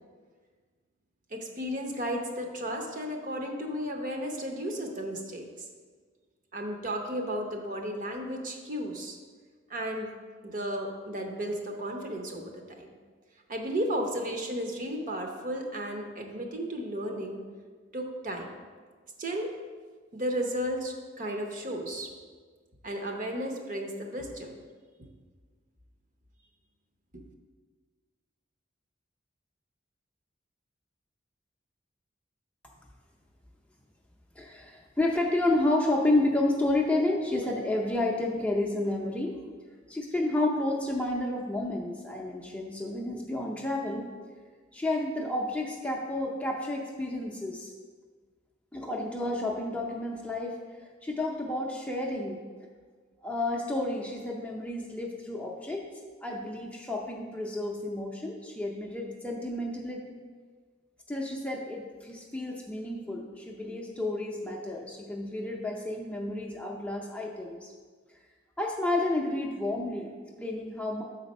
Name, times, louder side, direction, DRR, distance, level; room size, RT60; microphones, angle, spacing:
voice 1, 1.3-5.7 6.5-9.2 9.7-10.1 10.4-12.9 13.5-17.4 17.9-18.6 19.2-19.5 20.1-22.1 22.8-24.5 25.0-25.1 27.1-27.2, equal, 45° right, 3 dB, 0.8 m, -34 dB
voice 2, 34.4-39.4 39.9-44.1 44.7-47.7 48.7-50.6 51.0-52.4 53.2-55.8 56.2-60.1 61.1-67.7 68.6-71.0, left 2 dB, 5° left, -1 dB, 0.5 m, -30 dB
6.9 x 4.1 x 5.3 m, 1.5 s
head